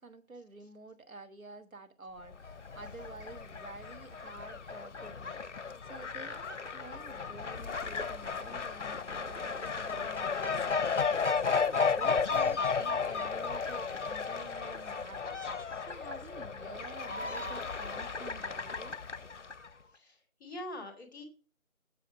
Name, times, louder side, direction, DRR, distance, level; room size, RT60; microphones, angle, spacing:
voice 1, 0.0-19.0, right 3 dB, 75° right, 1.4 m, -50 dB
Fowl, 2.3-19.7, left 5 dB, 60° left, 0.5 m, -34 dB
voice 2, 19.9-21.2, left 1 dB, 15° left, 1.9 m, -44 dB
7.0 x 5.9 x 5.0 m
figure-of-eight pair, 165°, 42 cm